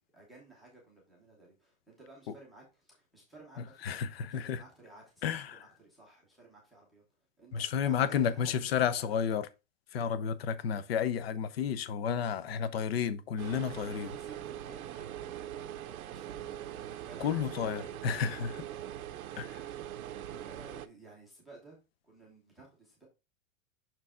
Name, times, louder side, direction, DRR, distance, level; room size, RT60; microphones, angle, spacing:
voice 1, 0.0-7.0 7.4-9.1 13.8-18.0 19.6-21.8 22.0-23.1, right 3 dB, ahead, 0.7 m, -55 dB
voice 2, 3.6-4.6 5.2-5.6 7.5-9.5 9.9-14.1 17.2-18.6 19.4-19.6, left 7 dB, 45° left, 0.6 m, -32 dB
sound 1, 13.4-20.9, right 11 dB, 90° right, 0.7 m, -42 dB
6.1 x 4.6 x 3.6 m
supercardioid pair, 175°, 41 cm